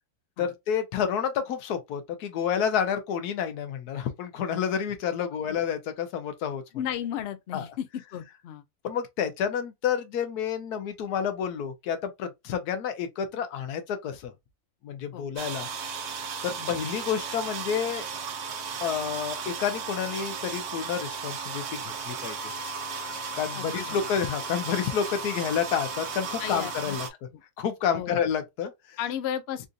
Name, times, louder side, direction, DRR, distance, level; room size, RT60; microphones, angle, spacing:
voice 1, 0.4-6.6 7.5-7.6 8.8-14.3 14.8-15.7 16.4-18.0 18.8-22.5 23.4-27.1 27.6-29.0, left 8 dB, 85° left, 1.2 m, -29 dB
voice 2, 6.7-8.6 15.1-15.3 16.6-16.7 23.5-24.0 26.4-27.0 27.3-27.4 27.9-28.2 29.0-29.7, left 10 dB, 65° left, 0.6 m, -34 dB
sound 1, 15.4-27.1, right 5 dB, 80° right, 1.2 m, -35 dB
3.8 x 2.6 x 2.4 m
omnidirectional pair, 1.6 m